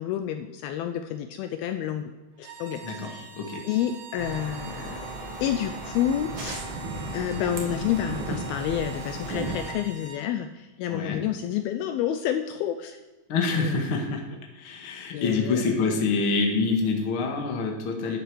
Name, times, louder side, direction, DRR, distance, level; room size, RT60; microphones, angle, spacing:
voice 1, 0.0-2.1 2.4-3.3 3.6-5.0 5.4-6.7 7.1-13.0 13.5-14.0 15.1-15.6 18.0-18.2, left 10 dB, 80° left, 7 dB, 2.3 m, -29 dB
sound 1, 2.4-10.3, right 5 dB, 90° right, 3.6 m, -45 dB
voice 2, 2.8-3.6 10.9-11.2 13.3-14.2 14.5-18.2, left 4 dB, 50° left, 1 dB, 1.7 m, -26 dB
sound 2, 4.2-9.7, right 2 dB, 60° right, 1.3 m, -35 dB
12.5 x 8.3 x 4.8 m, 1.2 s
omnidirectional pair, 4.7 m